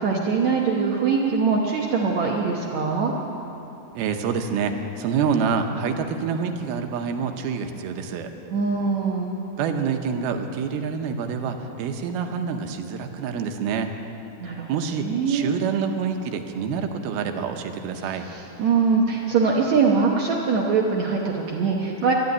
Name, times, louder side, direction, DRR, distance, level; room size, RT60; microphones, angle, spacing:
voice 1, 0.0-3.1 8.5-9.4 14.4-15.5 18.0-22.1, right 5 dB, 65° right, -1 dB, 1.8 m, -23 dB
voice 2, 4.0-8.3 9.6-13.9 14.7-18.3, right 6 dB, 85° right, 5 dB, 2.8 m, -27 dB
12.0 x 12.0 x 9.6 m, 2.9 s
omnidirectional pair, 4.3 m